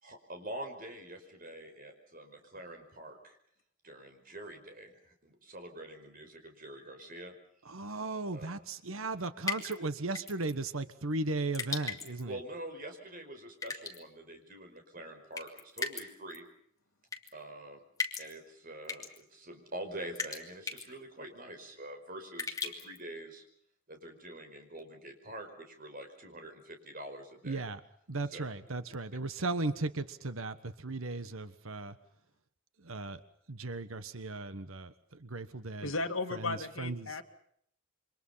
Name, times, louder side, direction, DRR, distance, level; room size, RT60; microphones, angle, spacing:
voice 1, 0.0-3.4 3.8-7.4 8.3-8.5 12.2-16.5 17.3-17.8 18.2-23.4 23.9-27.6 28.2-28.4, right 1 dB, 45° right, 5 dB, 5.2 m, -45 dB
voice 2, 7.7-12.3 27.4-27.8 28.1-30.6 30.8-31.9 32.8-33.2 33.5-34.9 35.2-35.9 36.3-37.1, right 2 dB, 90° right, 12 dB, 1.4 m, -36 dB
sound 1, 9.4-9.7 10.1-10.5 11.5-12.2 13.6-14.0 15.4-16.0 16.3-16.4 17.1-17.3 18.0-18.3 18.8-19.2 20.2-20.4 20.7-20.9 22.4-23.0, left 4 dB, 15° left, 2.8 m, -36 dB
voice 3, 35.8-37.2, left 3 dB, 75° left, 7 dB, 2.1 m, -35 dB
28.0 x 25.0 x 5.7 m, 0.67 s
head